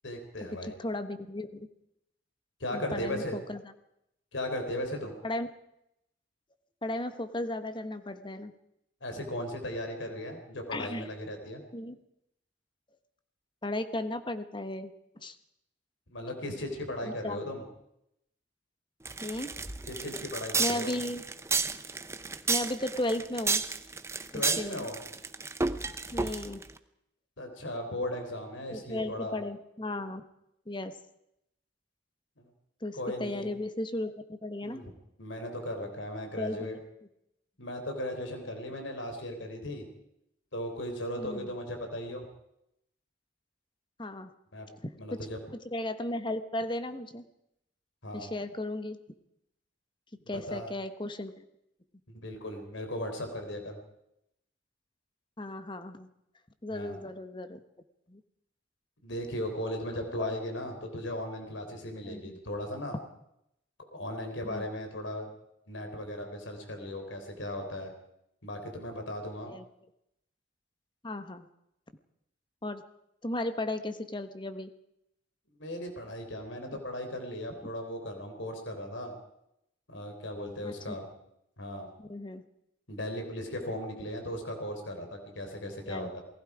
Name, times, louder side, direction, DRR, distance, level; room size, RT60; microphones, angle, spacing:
voice 1, 0.0-0.7 2.6-3.4 4.3-5.1 9.0-11.6 16.1-17.6 19.9-20.9 24.3-25.0 27.4-29.4 32.4-32.5 33.0-33.5 34.6-34.9 35.2-36.8 37.6-39.9 40.5-42.2 44.5-44.7 45.0-45.4 48.0-48.3 50.3-50.7 52.1-53.8 56.7-57.0 59.0-63.0 63.9-65.3 65.7-67.9 68.4-69.5 75.6-79.1 79.9-81.1 81.6-81.9 82.9-86.2, left 1 dB, 85° left, 4 dB, 3.8 m, -37 dB
voice 2, 0.6-1.7 2.7-3.6 5.2-5.5 6.8-8.5 10.7-11.1 11.7-12.0 13.6-15.3 17.1-17.4 19.2-19.5 20.6-21.2 22.5-23.6 24.3-24.9 26.1-26.6 28.7-30.2 30.7-30.9 32.8-34.8 36.4-36.7 41.2-41.5 44.0-44.3 44.8-47.3 48.1-49.0 50.3-51.4 55.4-56.1 56.6-57.6 58.1-58.2 60.2-60.3 62.0-62.4 64.4-64.7 69.5-69.6 71.0-71.5 72.6-72.8 73.2-74.7 77.6-77.7 80.6-81.0 82.1-82.4 85.8-86.1, left 1 dB, 25° left, 9 dB, 1.2 m, -35 dB
sound 1, 19.0-26.7, right 4 dB, 15° right, 0.8 m, -31 dB
28.0 x 19.0 x 4.9 m, 0.81 s
head